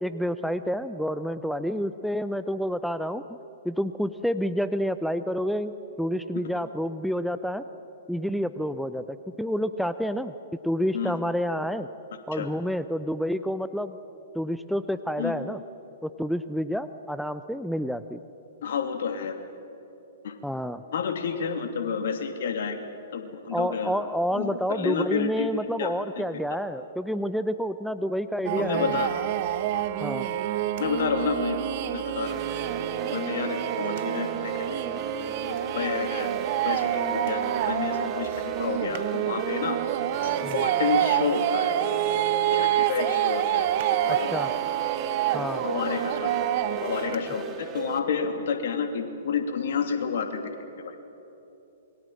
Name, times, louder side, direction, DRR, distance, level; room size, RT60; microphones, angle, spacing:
voice 1, 0.0-3.2 3.6-7.6 8.1-10.3 10.6-11.9 12.3-14.0 14.3-15.6 16.0-18.2 20.4-20.8 23.5-29.0 30.0-30.3 40.4-40.6 44.1-44.5 45.3-45.6, equal, ahead, 12 dB, 0.7 m, -29 dB
voice 2, 18.6-19.3 20.2-20.3 20.9-22.8 23.1-24.0 24.3-25.5 25.8-26.2 28.6-29.2 29.7-29.9 30.8-31.6 31.9-32.4 33.0-34.7 35.4-36.3 36.5-39.8 40.2-41.8 42.5-43.7 44.0-44.2 45.6-46.4 46.8-50.5 50.8-50.9, left 6 dB, 60° left, 6 dB, 2.8 m, -30 dB
sound 1, 28.4-47.2, right 11 dB, 45° right, 1.3 m, -27 dB
sound 2, 32.3-48.0, right 3 dB, 25° right, 2.5 m, -38 dB
27.5 x 22.5 x 7.6 m, 2.9 s
figure-of-eight pair, 115°, 0 cm